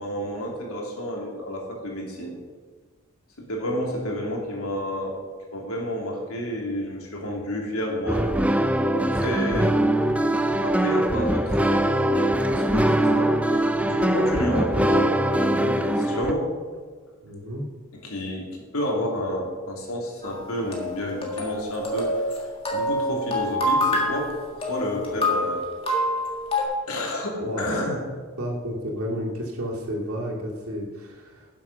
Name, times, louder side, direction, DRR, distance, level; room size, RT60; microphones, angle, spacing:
voice 1, 0.0-2.3 3.4-5.2 5.5-8.4 8.9-9.8 10.6-16.5 18.0-22.1 22.7-25.7 26.9-28.0, equal, 80° left, -1 dB, 2.7 m, -30 dB
sound 1, 8.1-16.3, right 1 dB, 5° right, 0.4 m, -22 dB
voice 2, 17.2-17.6 27.4-27.8 28.4-31.5, equal, 80° right, -2 dB, 2.8 m, -31 dB
sound 2, 20.2-26.6, left 1 dB, 25° left, 1.9 m, -26 dB
11.0 x 7.4 x 5.9 m, 1.6 s
head